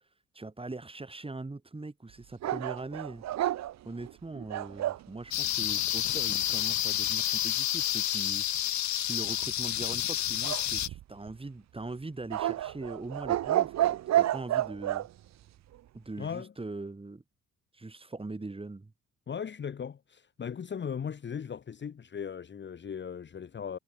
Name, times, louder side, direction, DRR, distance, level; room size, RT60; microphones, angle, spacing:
voice 1, 0.3-3.2 3.9-8.5 9.1-15.1 15.9-17.2 17.7-18.9, right 3 dB, 20° right, 5.3 m, -41 dB
sound 1, 2.4-5.1 10.4-11.3 12.3-15.1, right 13 dB, 65° right, 0.8 m, -30 dB
sound 2, 5.3-10.9, left 12 dB, 70° left, 1.5 m, -29 dB
voice 2, 16.2-16.5 19.3-23.8, left 7 dB, 40° left, 1.1 m, -38 dB
cardioid pair, 90°, 30 cm